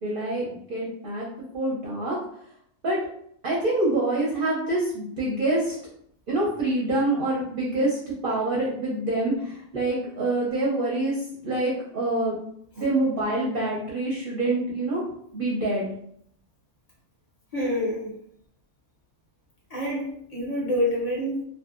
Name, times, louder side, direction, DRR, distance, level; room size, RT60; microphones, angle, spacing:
voice 1, 0.0-1.3 1.5-2.2 2.8-3.0 3.4-5.8 6.3-12.3 12.8-15.0 15.3-15.9, right 2 dB, 55° right, -5 dB, 0.6 m, -26 dB
voice 2, 17.5-18.2 19.7-21.4, equal, 60° left, -5 dB, 0.4 m, -27 dB
2.6 x 2.4 x 2.4 m, 0.70 s
omnidirectional pair, 1.6 m